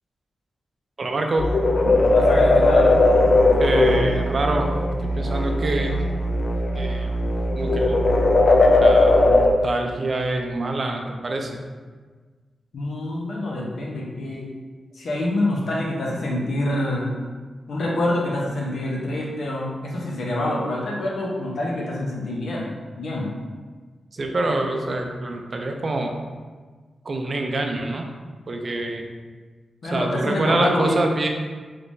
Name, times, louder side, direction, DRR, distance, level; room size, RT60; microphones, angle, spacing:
voice 1, 1.0-1.5 1.8-2.0 3.5-4.7 5.0-6.0 6.8-7.1 7.5-8.0 8.8-11.6 24.1-26.2 27.0-28.1 28.5-29.1 29.9-31.3, right 2 dB, 40° right, 3 dB, 0.4 m, -26 dB
sound 1, 1.4-9.5, left 2 dB, 55° left, 0.4 m, -18 dB
voice 2, 2.1-2.9 12.7-14.5 14.9-17.1 17.7-22.7 23.0-23.3 29.8-31.0, left 1 dB, 70° left, -3 dB, 0.8 m, -26 dB
3.4 x 3.2 x 2.6 m, 1.4 s
wide cardioid pair, 120°, 0 cm